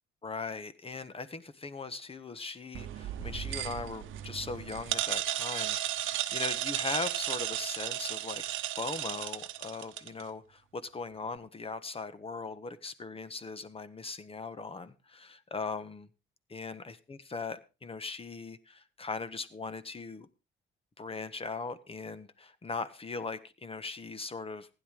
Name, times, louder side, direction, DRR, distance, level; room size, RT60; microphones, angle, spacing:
voice 1, 0.2-8.4 8.8-16.1 16.5-20.3 21.0-24.7, left 4 dB, 30° left, 1.4 m, -39 dB
sound 1, 2.7-10.2, right 13 dB, 80° right, 0.9 m, -34 dB
16.0 x 10.5 x 3.7 m
cardioid pair, 90°, 20 cm